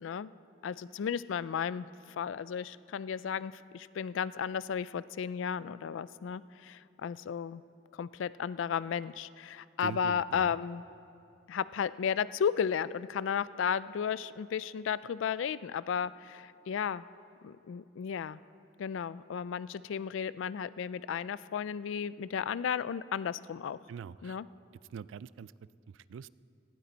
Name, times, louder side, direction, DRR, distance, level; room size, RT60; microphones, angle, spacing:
voice 1, 0.0-0.3 0.6-1.9 2.2-7.6 7.9-10.8 11.5-17.0 17.4-18.4 18.8-23.8 24.2-24.5, left 7 dB, 80° left, 17 dB, 0.3 m, -34 dB
voice 2, 9.8-10.6 23.9-24.4 24.9-25.5 25.9-26.3, right 7 dB, 80° right, 19 dB, 0.3 m, -43 dB
18.0 x 16.0 x 4.0 m, 2.5 s
head